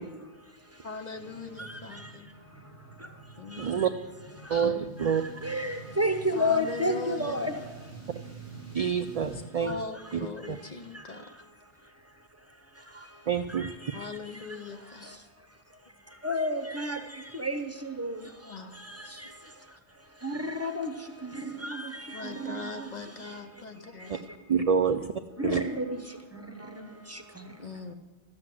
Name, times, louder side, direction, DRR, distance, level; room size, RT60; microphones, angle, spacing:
voice 1, 0.8-2.3 3.4-3.8 6.3-7.5 9.6-11.3 13.9-15.2 18.4-18.8 22.1-24.2 27.6-27.9, left 4 dB, 45° left, 6 dB, 0.8 m, -40 dB
sound 1, 1.1-9.4, right 3 dB, 75° left, 4.8 m, -47 dB
voice 2, 1.6-3.9 4.4-4.7 5.0-7.9 8.7-8.9 10.0-10.2 10.4-11.5 11.8-11.9 12.7-15.2 16.1-23.6 23.9-24.4 25.4-27.8, left 1 dB, 15° right, 6 dB, 0.8 m, -35 dB
voice 3, 3.6-3.9 4.5-5.2 8.7-9.7 10.5-10.6 13.3-13.7 24.5-25.1 25.4-25.6, right 7 dB, 55° right, 9 dB, 0.4 m, -26 dB
12.5 x 7.7 x 7.5 m, 1.3 s
omnidirectional pair, 1.0 m